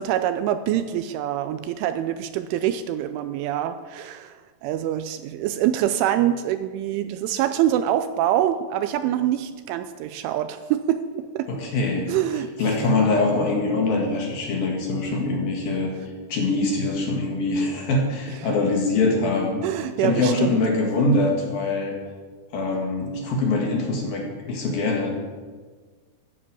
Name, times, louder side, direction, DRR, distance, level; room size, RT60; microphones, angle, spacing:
voice 1, 0.0-11.5 12.1-12.5 18.3-18.6 19.6-20.6, right 11 dB, 85° right, 10 dB, 2.9 m, -25 dB
voice 2, 11.5-12.1 12.6-15.9 16.3-19.6 20.0-21.9 22.5-25.1, left 2 dB, 55° left, 0 dB, 3.1 m, -23 dB
14.5 x 9.8 x 8.5 m, 1.4 s
omnidirectional pair, 5.8 m